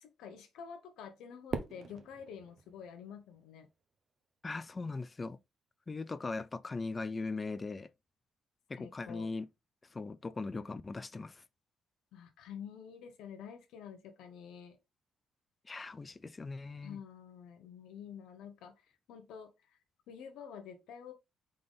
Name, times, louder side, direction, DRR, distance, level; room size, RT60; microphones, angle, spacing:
voice 1, 0.0-3.7 8.8-9.3 12.1-14.8 16.8-18.7 19.1-19.5 20.1-21.1, left 7 dB, 85° left, 0.8 m, -48 dB
Fireworks, 1.5-3.8, right 5 dB, 50° right, 0.8 m, -43 dB
voice 2, 4.4-5.4 5.9-7.9 8.7-9.5 9.9-11.4 15.7-17.0, left 3 dB, 30° left, 0.4 m, -39 dB
3.8 x 3.4 x 3.7 m
cardioid pair, 90°, 0 cm